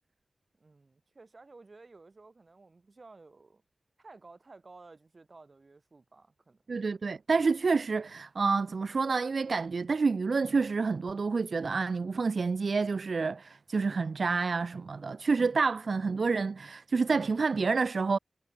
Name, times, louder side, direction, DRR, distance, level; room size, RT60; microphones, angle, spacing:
voice 1, 0.6-3.6 4.0-6.6, right 3 dB, 45° right, 4.4 m, -54 dB
voice 2, 6.7-18.2, right 4 dB, 70° right, 0.6 m, -28 dB
wide cardioid pair, 90°, 0 cm